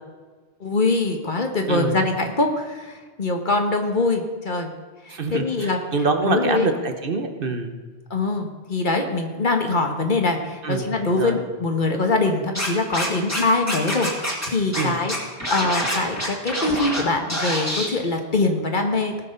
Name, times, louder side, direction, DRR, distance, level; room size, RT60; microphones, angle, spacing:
voice 1, 0.6-4.7 5.0-5.8 6.2-6.7 8.1-15.1 15.5-19.2, left 3 dB, 50° left, 4 dB, 1.4 m, -23 dB
voice 2, 5.1-7.8 10.6-10.9 11.2-11.4 14.7-15.0, right 3 dB, 55° right, 6 dB, 1.2 m, -25 dB
Scratching (performance technique), 12.5-13.4 13.7-14.5 14.7-14.8 15.1-17.0 17.3-17.9, equal, 15° left, 2.1 m, -26 dB
18.5 x 6.5 x 5.3 m, 1.4 s
omnidirectional pair, 1.1 m